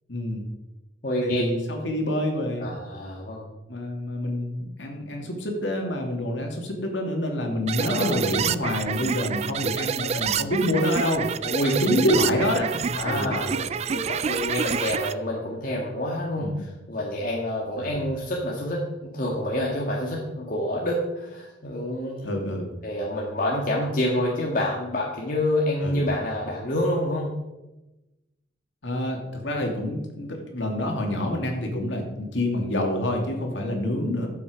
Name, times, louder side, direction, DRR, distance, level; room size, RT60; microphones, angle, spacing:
voice 1, 0.1-0.5 1.2-2.8 3.7-11.3 11.8-13.7 16.4-16.6 17.8-18.0 22.2-22.7 25.8-26.0 28.8-34.3, left 1 dB, 85° left, 1 dB, 2.6 m, -27 dB
voice 2, 1.0-1.4 2.6-3.5 7.8-8.2 11.4-12.0 12.9-13.5 13.9-22.3 22.8-27.3, left 1 dB, 50° left, -3 dB, 1.7 m, -27 dB
sound 1, 7.7-15.1, right 7 dB, 35° right, 0.3 m, -28 dB
13.0 x 7.5 x 5.1 m, 1.0 s
head